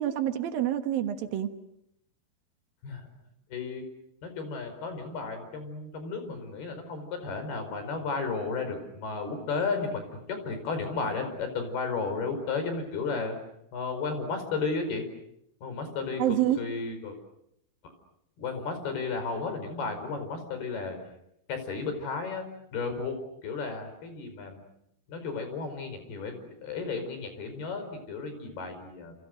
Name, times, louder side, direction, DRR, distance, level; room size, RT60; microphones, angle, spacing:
voice 1, 0.0-1.5 16.2-16.7, right 11 dB, 70° right, 8 dB, 3.1 m, -27 dB
voice 2, 3.5-3.8 4.2-13.4 13.7-15.0 15.6-17.2 17.8-17.9 18.4-21.0 21.5-22.5 22.7-23.2 23.4-24.6 25.1-29.1, left 4 dB, 85° left, 8 dB, 7.0 m, -33 dB
29.5 x 29.5 x 6.6 m, 0.77 s
omnidirectional pair, 4.4 m